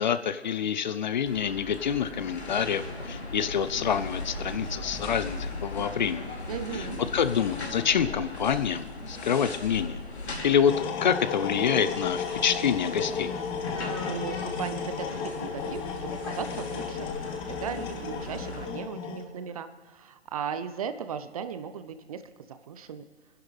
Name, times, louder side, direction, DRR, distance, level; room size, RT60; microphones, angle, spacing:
voice 1, 0.0-6.3 6.7-6.9 7.1-10.0 10.4-13.3, left 8 dB, 45° left, 13 dB, 0.6 m, -27 dB
sound 1, 1.2-18.7, left 2 dB, 80° left, 3.0 m, -38 dB
voice 2, 6.5-7.0 13.9-17.2 17.5-23.0, right 7 dB, 35° right, 11 dB, 0.6 m, -37 dB
sound 2, 10.7-19.2, left 6 dB, 15° left, 0.9 m, -34 dB
25.5 x 10.5 x 3.3 m, 1.4 s
figure-of-eight pair, 130°, 32 cm